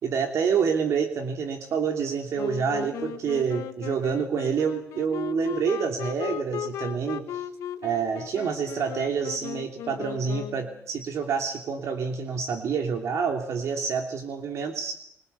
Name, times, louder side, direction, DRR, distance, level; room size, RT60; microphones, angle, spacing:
voice 1, 0.0-7.4 7.8-14.9, right 6 dB, 70° right, 4 dB, 2.9 m, -27 dB
Wind instrument woodwind instrument, 2.4-10.8, left 11 dB, 80° left, 1.3 m, -36 dB
24.0 x 21.5 x 6.9 m, 0.70 s
cardioid pair, 85°, 5 cm